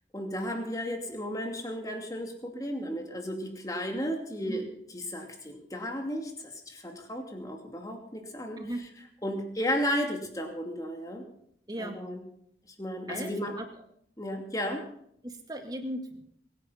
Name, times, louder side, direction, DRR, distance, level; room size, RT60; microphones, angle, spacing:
voice 1, 0.1-4.7 4.9-8.6 9.2-11.2 11.8-12.2 12.8-13.5 14.2-14.8, equal, 20° left, 3 dB, 2.6 m, -34 dB
voice 2, 11.7-12.0 13.1-13.7 15.2-16.2, right 1 dB, 20° right, 5 dB, 2.0 m, -37 dB
22.5 x 10.0 x 5.7 m, 0.70 s
head